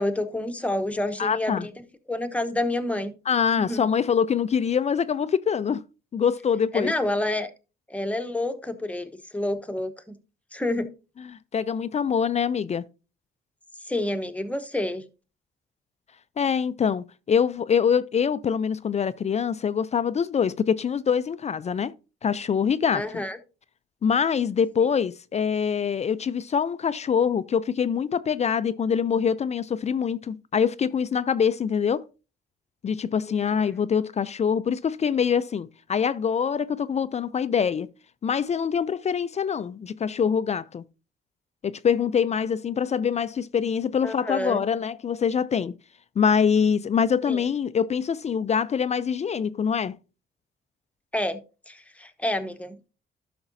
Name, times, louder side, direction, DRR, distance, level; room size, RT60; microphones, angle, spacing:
voice 1, 0.0-3.1 3.6-3.9 6.7-7.5 7.9-10.1 10.5-10.9 13.8-15.1 22.9-23.4 44.0-44.6 47.3-47.4 51.1-51.4 51.7-52.9, left 1 dB, 5° left, 0.9 m, -28 dB
voice 2, 1.2-1.7 3.3-5.8 6.1-6.9 11.5-12.8 16.4-21.9 22.2-23.0 24.0-32.1 32.8-37.9 38.2-40.8 41.6-45.7 46.2-50.0, left 7 dB, 35° left, 0.4 m, -24 dB
12.0 x 5.9 x 2.6 m
cardioid pair, 90°, 20 cm